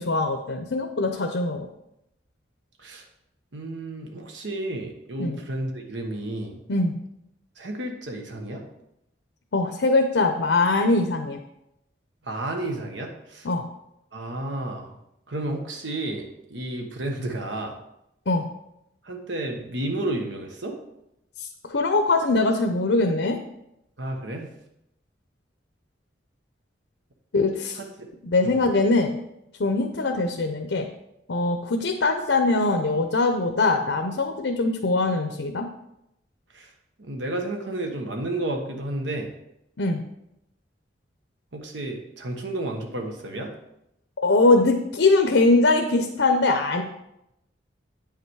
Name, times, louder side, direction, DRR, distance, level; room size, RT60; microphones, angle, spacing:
voice 1, 0.0-1.7 5.2-5.4 6.7-6.9 9.5-11.4 13.4-13.6 18.3-18.4 21.4-23.4 27.3-27.8 28.2-29.2 29.6-30.9 31.3-35.7 39.8-40.0 44.2-46.8, left 3 dB, 90° left, 5 dB, 0.7 m, -22 dB
voice 2, 3.5-6.6 7.6-8.6 12.2-13.5 14.1-15.0 15.3-17.8 19.0-20.8 24.0-24.5 28.4-28.6 36.5-36.7 37.0-39.3 41.5-43.5, right 1 dB, 85° right, 2 dB, 1.3 m, -31 dB
8.8 x 5.8 x 4.7 m, 0.83 s
head